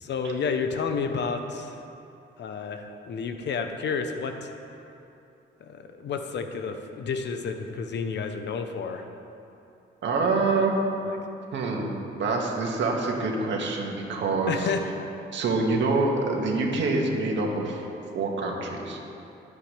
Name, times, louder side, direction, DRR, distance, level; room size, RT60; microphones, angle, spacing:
voice 1, 0.0-1.8 2.4-4.5 5.6-9.0 14.5-14.9, left 5 dB, 60° left, 6 dB, 1.0 m, -30 dB
voice 2, 10.0-10.7 11.5-11.9 12.2-14.7 15.3-17.8 18.1-19.0, right 3 dB, 70° right, 0 dB, 2.2 m, -26 dB
23.0 x 8.6 x 3.5 m, 2.8 s
cardioid pair, 90°, 20 cm